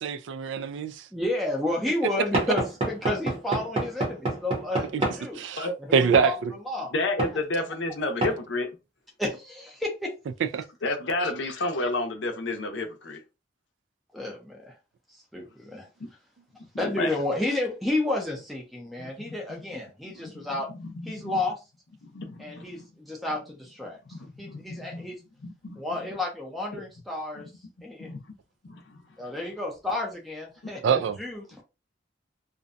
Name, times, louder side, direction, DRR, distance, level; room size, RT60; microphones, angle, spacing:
voice 1, 0.0-1.1 4.9-5.0 5.3-6.5 10.4-10.7 30.8-31.2, right 6 dB, 70° right, 0.3 m, -25 dB
voice 2, 1.1-5.4 5.9-6.4 6.7-6.9 9.2-10.1 14.1-14.8 15.3-15.9 16.8-20.7 21.1-21.6 22.4-24.0 24.4-25.2 25.8-27.5 27.8-28.1 29.2-31.6, left 2 dB, ahead, 0.5 m, -31 dB
Knock / Wood, 2.3-5.2 6.1-6.3 7.2-7.4 8.2-8.4, right 2 dB, 30° right, 0.8 m, -28 dB
voice 3, 6.9-8.7 10.8-13.2 16.8-17.1 19.0-19.4 20.3-21.4 22.0-22.8 24.1-25.0 25.4-25.8 26.7-26.8 28.0-28.2 28.6-29.0, left 2 dB, 70° left, 0.6 m, -31 dB
2.6 x 2.1 x 2.5 m
head